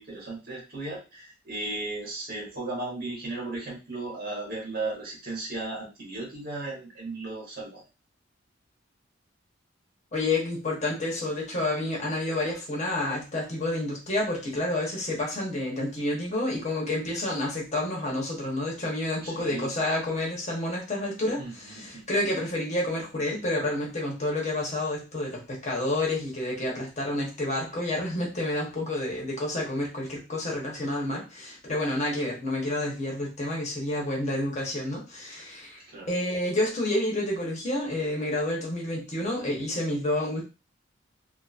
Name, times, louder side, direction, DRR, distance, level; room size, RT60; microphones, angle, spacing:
voice 1, 0.0-7.8 19.2-19.7 21.4-22.0 35.9-36.1, right 2 dB, 50° right, -4 dB, 1.2 m, -35 dB
voice 2, 10.1-35.8 36.1-40.4, left 1 dB, 35° left, -2 dB, 1.0 m, -29 dB
2.7 x 2.6 x 2.4 m, 0.30 s
head